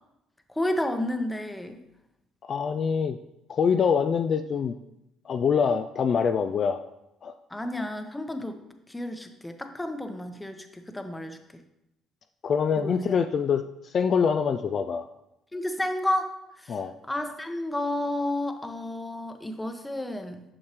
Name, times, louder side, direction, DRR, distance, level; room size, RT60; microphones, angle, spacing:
voice 1, 0.5-1.8 7.5-8.6 8.9-11.6 12.8-13.0 15.5-16.8 17.1-20.4, left 1 dB, 10° left, 7 dB, 0.9 m, -31 dB
voice 2, 2.4-3.2 3.5-4.8 5.3-6.8 7.2-7.3 12.4-15.0 16.7-16.9, left 6 dB, 50° left, 8 dB, 0.3 m, -25 dB
8.6 x 6.4 x 3.0 m, 0.86 s
supercardioid pair, 70°, 0 cm